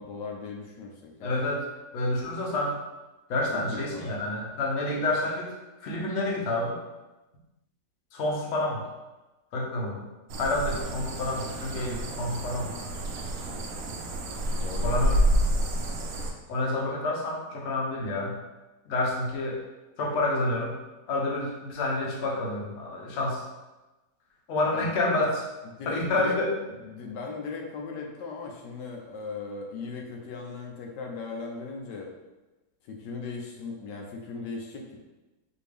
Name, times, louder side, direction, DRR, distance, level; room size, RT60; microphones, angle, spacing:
voice 1, 0.0-1.4 3.5-4.2 14.6-14.9 16.9-17.0 18.0-18.2 24.7-24.9 25.8-26.4 26.7-32.1 32.8-35.0, left 4 dB, 85° left, 1 dB, 1.3 m, -38 dB
voice 2, 1.2-1.7 1.9-2.7 3.3-5.5 5.8-6.8 8.1-8.8 9.5-10.1 10.4-12.7 14.8-15.1 16.5-18.3 18.9-19.6 20.0-20.7 21.1-23.4 24.5-25.4 25.9-26.5, left 2 dB, 55° left, -3 dB, 0.9 m, -28 dB
sound 1, 10.3-16.3, right 1 dB, 70° right, 0.8 m, -29 dB
4.3 x 2.7 x 3.3 m, 1.1 s
omnidirectional pair, 1.8 m